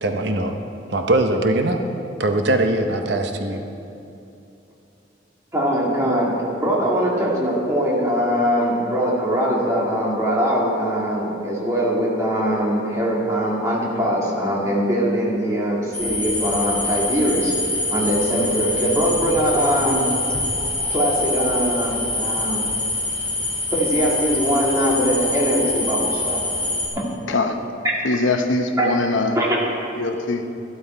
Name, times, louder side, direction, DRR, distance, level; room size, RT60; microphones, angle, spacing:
voice 1, 0.0-0.6 0.9-1.8 2.2-3.6, right 2 dB, 65° right, 5 dB, 0.8 m, -21 dB
voice 2, 5.5-17.5 17.9-20.1 20.9-22.7 23.7-26.4 26.9-27.0 28.8-28.9 29.3-29.6, equal, 15° right, -5 dB, 2.2 m, -21 dB
sound 1, 15.9-26.9, left 2 dB, 10° left, 2.0 m, -25 dB
voice 3, 28.0-29.4 30.0-30.4, left 3 dB, 85° left, 6 dB, 0.9 m, -22 dB
12.5 x 12.0 x 4.5 m, 2.8 s
head